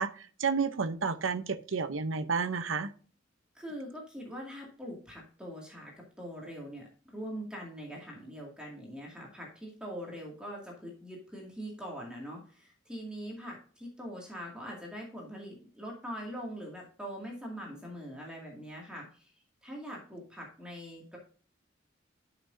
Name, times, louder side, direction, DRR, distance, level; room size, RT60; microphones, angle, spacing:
voice 1, 0.0-2.9, right 5 dB, 80° right, 10 dB, 0.7 m, -31 dB
voice 2, 3.5-19.3 19.6-21.2, equal, 5° right, -2 dB, 2.2 m, -43 dB
12.0 x 6.0 x 2.7 m, 0.40 s
head